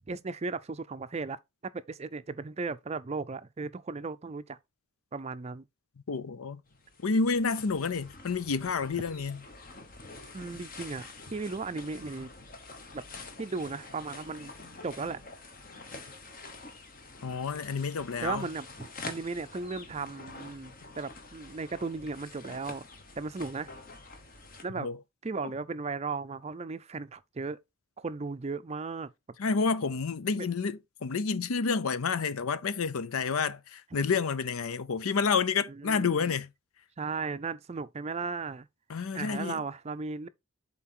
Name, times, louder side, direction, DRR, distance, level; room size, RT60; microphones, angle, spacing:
voice 1, 0.1-1.4 1.6-4.6 5.1-5.6 10.3-12.3 12.9-13.0 13.4-14.5 14.8-15.2 18.2-22.9 23.2-23.7 24.6-24.9 25.2-27.6 28.0-29.1 30.3-30.5 35.7-36.3 37.0-38.7 39.1-40.3, right 4 dB, 30° right, 0.4 m, -36 dB
voice 2, 6.1-6.6 7.0-9.4 17.2-18.4 24.8-25.0 29.4-36.5 38.9-39.6, left 5 dB, 90° left, 0.6 m, -29 dB
sound 1, 6.7-24.6, left 3 dB, 40° left, 1.1 m, -47 dB
7.4 x 4.0 x 4.4 m
head